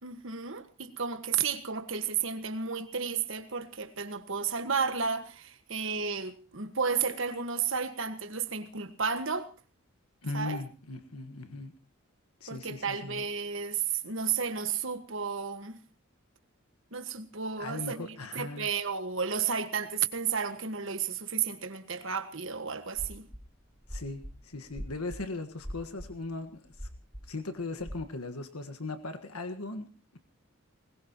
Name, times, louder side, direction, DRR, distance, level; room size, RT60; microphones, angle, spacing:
voice 1, 0.0-9.5 10.3-10.6 12.5-15.8 16.9-23.3, right 6 dB, 60° right, 1.5 m, -32 dB
voice 2, 10.2-11.7 12.4-13.2 17.6-18.7 23.9-26.7 27.3-29.9, left 3 dB, 90° left, 1.6 m, -38 dB
sound 1, 22.9-23.4 23.8-25.2 25.6-26.1 26.7-27.3 27.8-27.9, equal, 10° right, 3.1 m, -40 dB
21.0 x 20.0 x 3.0 m
head